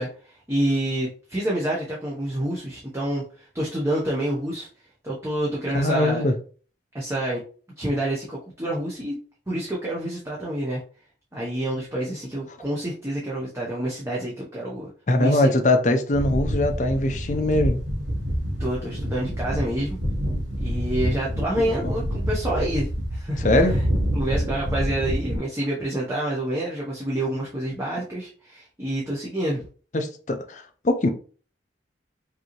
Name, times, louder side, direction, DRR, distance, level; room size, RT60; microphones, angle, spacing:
voice 1, 0.0-4.7 5.0-6.3 6.9-7.4 7.8-9.2 9.5-10.8 11.3-14.9 15.2-15.5 18.6-20.0 20.6-23.8 24.1-29.6, right 1 dB, 15° right, 0.8 m, -28 dB
voice 2, 5.7-6.3 15.1-17.8 21.6-21.9 23.4-23.8 29.9-31.1, left 1 dB, 40° left, 0.5 m, -22 dB
sound 1, 16.1-25.4, equal, 85° right, 1.1 m, -27 dB
5.1 x 2.8 x 3.0 m
head